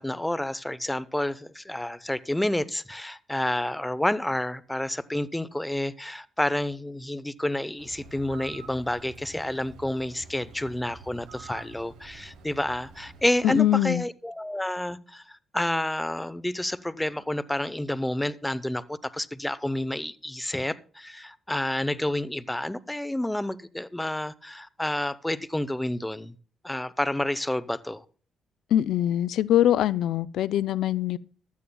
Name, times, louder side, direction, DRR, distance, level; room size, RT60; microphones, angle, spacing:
voice 1, 0.0-26.3 26.6-28.0, left 1 dB, 10° left, 0.7 m, -29 dB
Bird, 7.8-13.6, right 4 dB, 85° right, 4.8 m, -48 dB
voice 2, 13.4-14.0 28.7-31.2, left 12 dB, 80° left, 0.4 m, -23 dB
15.5 x 12.0 x 2.3 m
cardioid pair, 90°, 0 cm